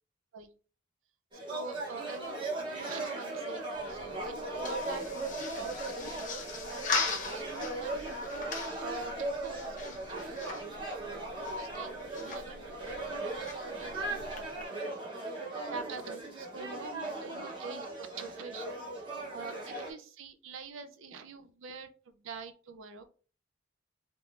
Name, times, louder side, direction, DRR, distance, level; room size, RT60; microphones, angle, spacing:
sound 1, 1.3-19.9, right 2 dB, 25° right, 0.9 m, -38 dB
voice 1, 1.5-3.6 3.9-8.1 8.8-10.9 11.5-14.9 15.7-18.8 19.3-23.0, right 5 dB, 70° right, 9 dB, 0.4 m, -46 dB
sound 2, 3.7-14.6, left 4 dB, 40° left, 0.8 m, -40 dB
3.6 x 3.1 x 2.4 m, 0.38 s
head